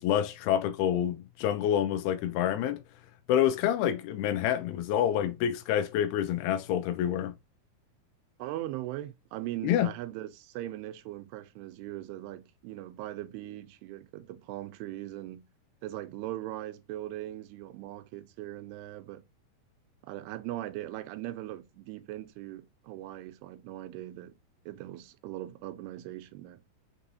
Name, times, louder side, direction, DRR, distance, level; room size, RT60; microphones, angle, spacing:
voice 1, 0.0-2.8 3.3-7.3 9.6-9.9, left 10 dB, 85° left, 2.5 m, -27 dB
voice 2, 8.4-15.5 15.8-19.2 20.0-24.4 24.7-26.6, right 15 dB, 90° right, 2.6 m, -40 dB
6.3 x 2.7 x 2.7 m
omnidirectional pair, 4.5 m